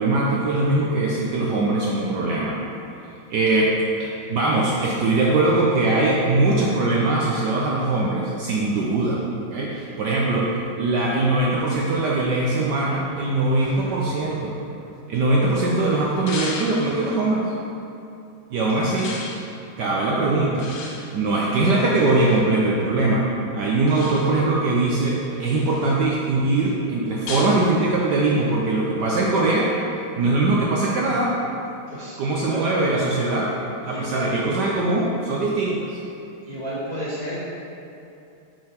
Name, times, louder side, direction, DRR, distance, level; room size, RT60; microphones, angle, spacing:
voice 1, 0.0-2.6 3.0-3.7 4.0-9.2 9.5-10.5 10.8-14.6 15.1-17.5 18.5-19.2 19.8-20.7 21.1-23.2 23.5-29.7 30.2-31.3 32.2-33.5 33.9-36.0, right 2 dB, 70° right, -4 dB, 1.1 m, -21 dB
sound 1, 12.9-15.5 16.3-17.3 19.0-19.5 20.6-22.5 23.9-24.5 25.1-26.0 27.3-27.7, left 4 dB, 80° left, 1.5 m, -37 dB
voice 2, 31.9-32.6 33.8-34.3 36.4-37.4, equal, 25° left, -10 dB, 1.0 m, -32 dB
7.6 x 3.8 x 4.4 m, 2.8 s
omnidirectional pair, 2.3 m